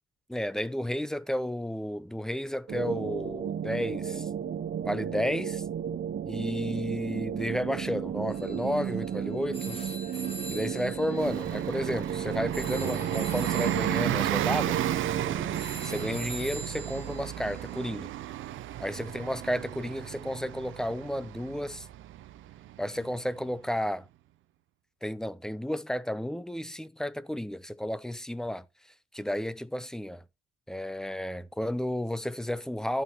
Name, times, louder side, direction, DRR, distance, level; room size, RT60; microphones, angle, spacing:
voice 1, 0.3-4.3 4.8-5.6 6.2-9.9 10.5-14.8 15.8-18.1 18.8-21.9 22.8-24.0 25.0-28.6 29.1-30.2 30.7-33.0, equal, 5° left, 0.7 m, -32 dB
sound 1, 2.7-15.6, right 8 dB, 55° right, 0.9 m, -33 dB
sound 2, 8.3-17.8, right 1 dB, 30° left, 2.5 m, -44 dB
Bus, 11.1-23.4, right 13 dB, 80° right, 0.7 m, -34 dB
15.0 x 5.3 x 3.1 m
cardioid pair, 90°, 20 cm